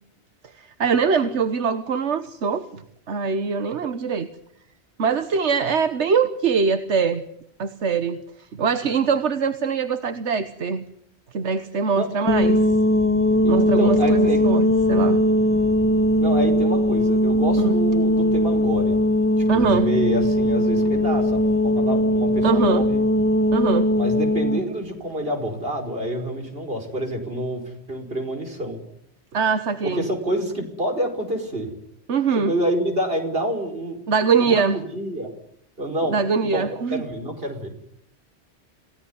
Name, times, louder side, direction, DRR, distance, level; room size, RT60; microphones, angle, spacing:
voice 1, 0.4-2.8 3.1-4.3 5.0-7.2 7.6-8.2 8.6-10.9 11.3-12.6 13.5-15.2 17.6-17.7 19.5-19.9 22.4-22.8 23.5-23.9 29.3-30.0 32.1-32.5 34.1-34.8 36.1-37.0, right 5 dB, 85° right, 10 dB, 1.5 m, -22 dB
sound 1, 12.3-24.6, left 1 dB, 10° left, 0.9 m, -19 dB
voice 2, 13.4-14.4 16.2-18.9 19.4-23.0 23.9-27.6 27.9-28.8 29.8-31.7 32.3-34.0 34.4-35.3 35.8-36.2 36.5-37.7, right 1 dB, 60° right, 4 dB, 5.2 m, -27 dB
28.0 x 17.0 x 9.6 m, 0.74 s
omnidirectional pair, 1.1 m